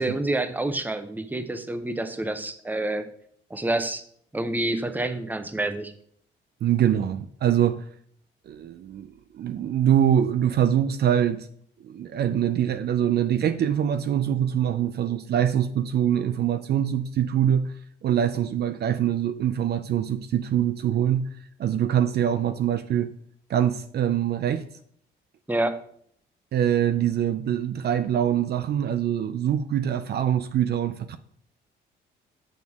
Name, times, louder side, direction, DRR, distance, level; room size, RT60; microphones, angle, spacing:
voice 1, 0.0-3.0 3.5-4.0 4.3-5.9 25.5-25.7, right 2 dB, 10° right, 0.7 m, -28 dB
voice 2, 6.6-7.8 8.5-11.5 11.8-17.7 18.0-21.3 21.6-23.1 23.5-24.6 26.5-31.2, right 10 dB, 55° right, 0.4 m, -24 dB
6.9 x 6.2 x 3.6 m
cardioid pair, 90°, 20 cm